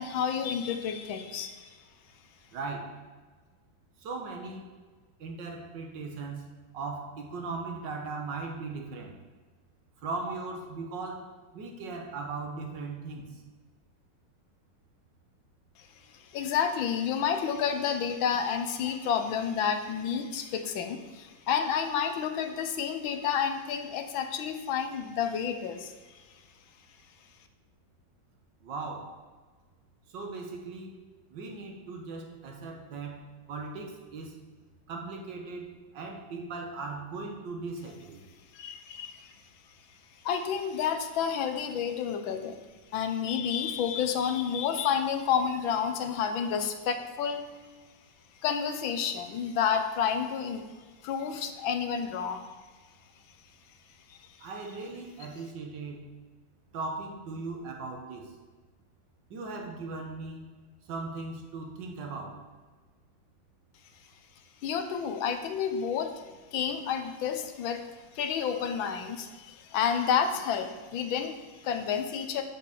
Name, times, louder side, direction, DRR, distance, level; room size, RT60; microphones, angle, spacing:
voice 1, 0.0-1.8 16.1-26.2 38.5-39.3 40.2-42.6 42.9-47.4 48.4-50.7 51.0-52.5 54.1-54.3 64.6-66.2 66.5-72.4, left 7 dB, 75° left, 7 dB, 1.5 m, -30 dB
voice 2, 2.5-3.0 4.0-4.7 5.2-6.5 6.7-9.2 10.0-13.4 28.6-29.2 30.1-31.0 31.3-34.4 34.9-38.2 54.4-56.1 56.7-58.4 59.3-60.5 60.9-62.4, right 3 dB, 60° right, 2 dB, 1.7 m, -38 dB
6.7 x 5.4 x 6.8 m, 1.4 s
omnidirectional pair, 2.3 m